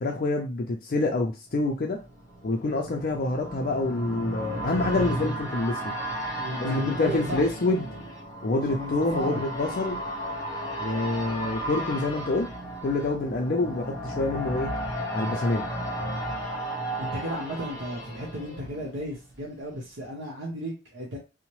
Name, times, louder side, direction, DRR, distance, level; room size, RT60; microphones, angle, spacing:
voice 1, 0.0-2.0 2.4-6.0 6.6-7.9 8.4-10.0 10.8-12.5 12.8-14.7 15.1-15.7, left 2 dB, 50° left, 1 dB, 0.4 m, -27 dB
sound 1, 1.6-19.4 19.7-19.8, right 1 dB, 15° left, 0.8 m, -34 dB
voice 2, 6.4-7.4 8.7-9.4 17.0-21.2, equal, 70° right, -3 dB, 0.8 m, -34 dB
2.8 x 2.1 x 3.0 m, 0.28 s
head